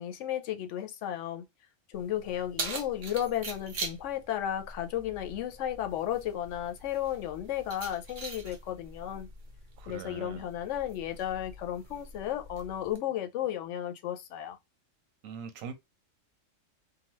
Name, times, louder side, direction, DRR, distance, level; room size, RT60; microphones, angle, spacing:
voice 1, 0.0-1.4 1.9-9.3 9.9-14.6, left 11 dB, 70° left, 0.9 m, -34 dB
Keys jangling, 1.9-13.0, right 3 dB, 45° right, 0.7 m, -43 dB
voice 2, 9.8-10.4 15.2-15.7, right 7 dB, 85° right, 1.0 m, -42 dB
2.9 x 2.2 x 2.9 m
omnidirectional pair, 1.3 m